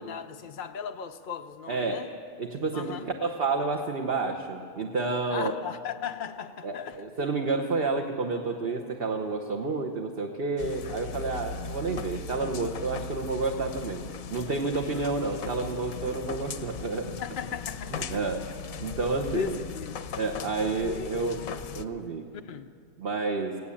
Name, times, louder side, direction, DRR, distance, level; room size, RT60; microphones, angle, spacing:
voice 1, 0.0-2.1 2.7-3.1 5.3-7.0 15.1-15.3 17.2-18.2 19.3-20.0 20.8-21.6 22.3-22.7, left 7 dB, 55° left, 5 dB, 0.6 m, -37 dB
voice 2, 1.7-2.1 2.4-5.5 6.6-14.0 14.3-17.1 17.9-18.5 18.8-19.6 20.2-21.4 21.7-22.2 23.0-23.6, right 3 dB, 45° right, 3 dB, 1.2 m, -30 dB
sound 1, 10.6-21.9, left 5 dB, 80° left, 1.2 m, -38 dB
18.0 x 17.0 x 8.6 m, 2.3 s
omnidirectional pair, 1.4 m